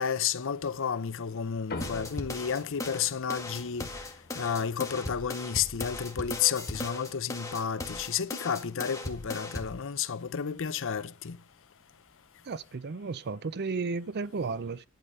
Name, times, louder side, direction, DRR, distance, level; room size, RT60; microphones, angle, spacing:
voice 1, 0.0-3.9 4.3-11.4, left 7 dB, 65° left, 0.6 m, -31 dB
sound 1, 1.7-6.4, left 2 dB, 45° left, 1.3 m, -45 dB
sound 2, 1.8-9.8, left 2 dB, 15° left, 1.8 m, -38 dB
voice 2, 12.5-14.9, right 4 dB, 50° right, 0.5 m, -33 dB
12.0 x 8.5 x 5.4 m
head